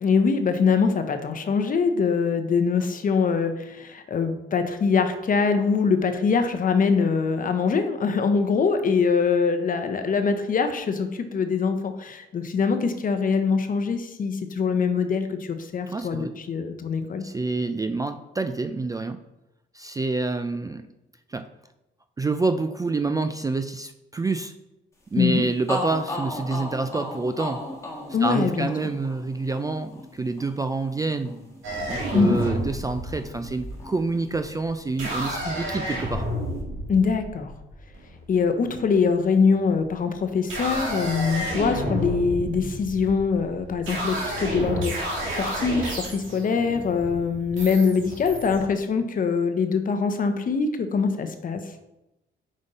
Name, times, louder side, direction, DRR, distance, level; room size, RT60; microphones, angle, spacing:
voice 1, 0.0-17.2 25.2-25.4 28.1-28.7 32.1-32.4 36.9-37.5 38.3-51.6, left 5 dB, 45° left, 8 dB, 0.8 m, -23 dB
voice 2, 15.9-16.3 17.2-19.2 19.7-20.8 21.3-21.4 22.2-24.5 25.1-27.6 28.2-31.3 31.9-36.2, right 3 dB, 20° right, 9 dB, 0.3 m, -27 dB
sound 1, 25.3-25.4 25.7-33.5 33.8-35.0, left 1 dB, 15° left, 1.6 m, -37 dB
sound 2, 31.6-38.4 39.4-39.9 40.3-48.6, right 1 dB, 80° right, 1.9 m, -31 dB
5.3 x 5.2 x 4.1 m, 0.93 s
cardioid pair, 90°, 20 cm